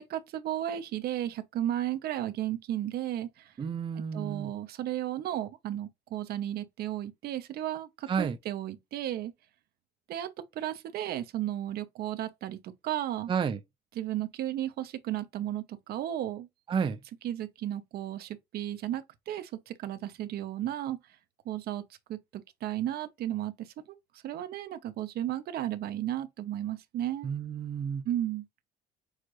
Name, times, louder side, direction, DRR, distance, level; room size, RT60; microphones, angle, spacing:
voice 1, 0.0-3.5 4.1-9.3 10.1-13.3 14.0-16.5 17.2-21.0 21.5-21.8 22.1-24.0 24.2-27.3 28.0-28.5, right 12 dB, 65° right, 0.7 m, -34 dB
voice 2, 3.6-4.5 8.1-8.4 13.3-13.6 16.7-17.0 27.2-28.0, right 6 dB, 30° right, 0.5 m, -31 dB
6.4 x 2.5 x 3.0 m
cardioid pair, 110°, 17 cm